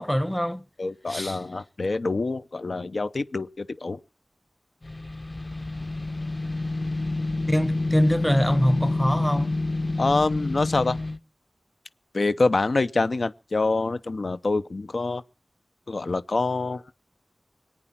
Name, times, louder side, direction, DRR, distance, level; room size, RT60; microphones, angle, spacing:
voice 1, 0.0-0.6 1.1-1.4 7.5-9.6, equal, 5° left, 0.8 m, -24 dB
voice 2, 0.8-4.0 10.0-11.0 12.1-15.2 15.9-16.8, left 3 dB, 80° left, 0.7 m, -26 dB
sound 1, 4.8-11.2, left 2 dB, 40° left, 1.1 m, -28 dB
23.5 x 9.1 x 5.9 m
wide cardioid pair, 55°, 0 cm